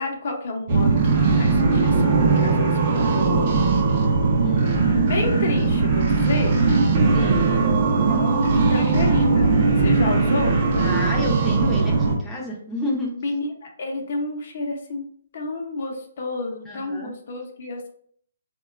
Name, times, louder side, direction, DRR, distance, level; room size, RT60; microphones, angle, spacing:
voice 1, 0.0-3.6 5.1-6.6 8.1-10.6 13.2-15.1 15.3-17.9, left 2 dB, 55° left, 2 dB, 0.6 m, -30 dB
sound 1, 0.7-12.2, right 4 dB, 40° right, 0.6 m, -19 dB
voice 2, 7.1-7.5 10.8-13.1 16.7-17.1, equal, 5° left, -5 dB, 0.5 m, -29 dB
3.5 x 2.2 x 2.3 m, 0.62 s
hypercardioid pair, 150°, 0 cm